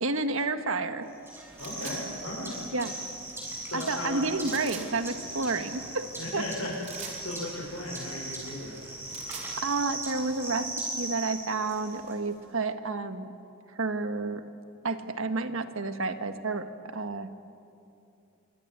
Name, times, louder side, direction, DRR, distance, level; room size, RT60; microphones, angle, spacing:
voice 1, 0.0-1.1 2.7-2.9 3.7-6.4 9.6-13.3 13.7-14.5 14.8-17.3, right 3 dB, 70° right, 8 dB, 1.6 m, -30 dB
sound 1, 1.2-12.1, right 1 dB, 10° right, 6.7 m, -39 dB
voice 2, 1.6-2.6 3.7-4.6 6.2-6.7 7.2-8.8, left 1 dB, 70° left, -5 dB, 6.8 m, -36 dB
sound 2, 1.6-2.0 4.4-4.9 6.8-7.2 8.9-9.5, right 5 dB, 35° right, 4.6 m, -41 dB
25.5 x 24.5 x 9.5 m, 2.7 s
head